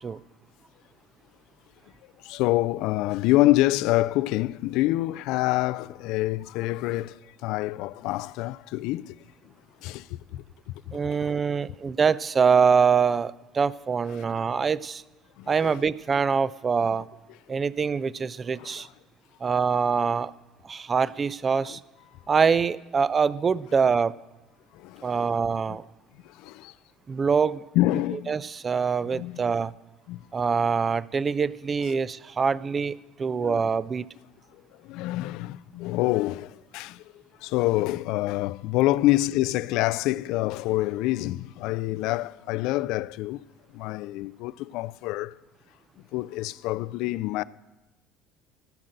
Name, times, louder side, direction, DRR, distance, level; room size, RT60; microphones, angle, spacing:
voice 1, 2.2-9.2 9.8-10.4 10.9-11.0 11.3-11.4 14.1-14.2 15.4-15.8 18.6-18.9 21.7-21.8 24.7-25.3 26.2-26.7 27.7-28.3 29.1-29.4 30.1-30.2 33.4-33.7 34.8-37.0 37.4-43.5 43.7-45.3 46.1-47.4, left 17 dB, 65° left, 0.3 m, -27 dB
voice 2, 10.9-15.0 15.5-17.1 17.5-18.9 19.4-20.3 20.6-21.8 22.3-24.2 25.0-25.8 27.1-27.6 28.3-29.7 30.3-34.1, right 6 dB, 30° right, 0.4 m, -24 dB
16.5 x 6.4 x 7.7 m
hypercardioid pair, 65°, 0 cm